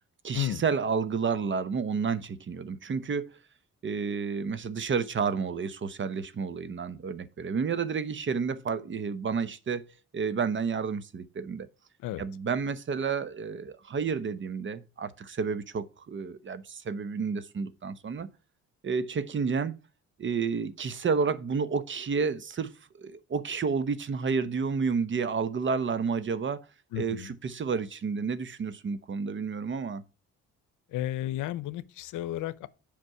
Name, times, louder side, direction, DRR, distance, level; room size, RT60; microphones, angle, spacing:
voice 1, 0.2-3.3 3.8-9.8 10.1-11.7 12.2-18.3 18.8-19.8 20.2-26.6 27.0-30.0, right 5 dB, 40° right, 0.9 m, -30 dB
voice 2, 26.9-27.3 30.9-32.7, left 13 dB, 85° left, 0.7 m, -33 dB
8.0 x 5.2 x 5.6 m
cardioid pair, 90°, 30 cm